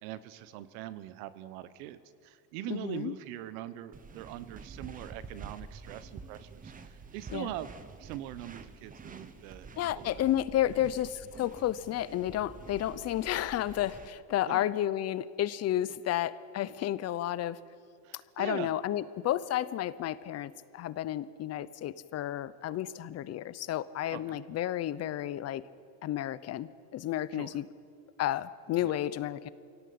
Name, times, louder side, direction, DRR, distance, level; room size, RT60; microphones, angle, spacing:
voice 1, 0.0-9.7 9.9-10.8 14.5-14.7 18.0-18.7 24.1-24.4 27.3-27.5 28.8-28.9, right 13 dB, 85° right, 14 dB, 1.3 m, -42 dB
voice 2, 2.7-3.1 7.3-7.5 9.8-17.6 18.4-25.6 26.0-27.7 28.2-29.5, left 12 dB, 40° left, 17 dB, 0.7 m, -32 dB
sound 1, 3.9-14.1, right 4 dB, 20° right, 1.1 m, -48 dB
25.0 x 17.5 x 8.6 m, 2.3 s
cardioid pair, 150°, 41 cm